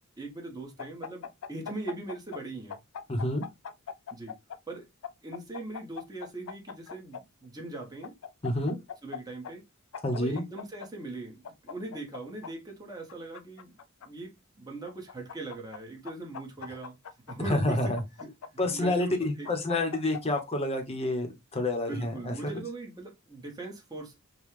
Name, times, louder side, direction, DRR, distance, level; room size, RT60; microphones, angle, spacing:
voice 1, 0.2-2.8 4.1-4.3 4.7-4.8 5.2-8.1 9.0-9.6 10.1-13.7 14.0-16.9 17.3-19.5 21.6-24.2, right 2 dB, 20° right, 1.2 m, -40 dB
sound 1, 0.8-2.4 2.7-4.6 5.0-7.2 8.0-9.2 9.4-9.5 9.9-10.9 11.4-12.5 13.1-14.1 14.9-15.8 16.1-17.3 18.0-18.9 19.5-20.4, left 7 dB, 70° left, 0.4 m, -40 dB
voice 2, 3.1-3.4 8.4-8.8 10.0-10.4 17.5-18.0 18.6-22.3, left 2 dB, 30° left, 0.9 m, -28 dB
5.4 x 2.3 x 3.2 m
head